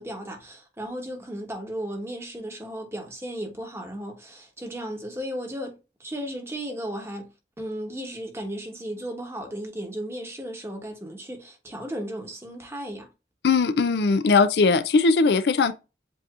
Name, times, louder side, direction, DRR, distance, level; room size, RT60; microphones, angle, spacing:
voice 1, 0.0-13.1, equal, 15° right, 1.2 m, -35 dB
voice 2, 13.4-15.7, left 4 dB, 70° left, 0.4 m, -20 dB
7.7 x 2.8 x 2.4 m
head